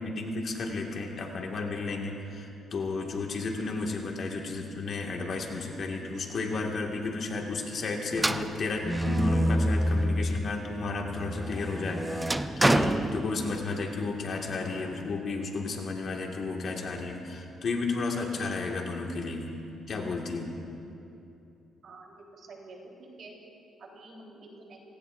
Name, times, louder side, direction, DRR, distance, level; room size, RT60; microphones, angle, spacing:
voice 1, 0.0-19.5 19.9-20.6, left 3 dB, 55° left, 1 dB, 2.1 m, -33 dB
sound 1, 8.1-10.6 11.0-13.8, right 1 dB, 15° right, 0.6 m, -27 dB
voice 2, 21.8-23.4 23.8-24.8, right 2 dB, 60° right, -1 dB, 4.0 m, -48 dB
27.0 x 18.0 x 2.7 m, 2.7 s
cardioid pair, 90°, 0 cm